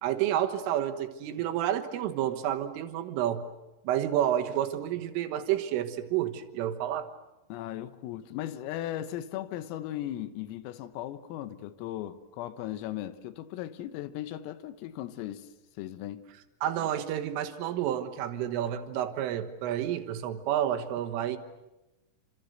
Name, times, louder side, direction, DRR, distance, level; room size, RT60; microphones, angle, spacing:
voice 1, 0.0-3.5 3.9-7.1 16.6-21.4, right 11 dB, 75° right, 3.9 m, -30 dB
voice 2, 7.5-15.5 15.8-16.3, left 12 dB, 85° left, 3.8 m, -37 dB
28.0 x 26.5 x 7.9 m
omnidirectional pair, 5.9 m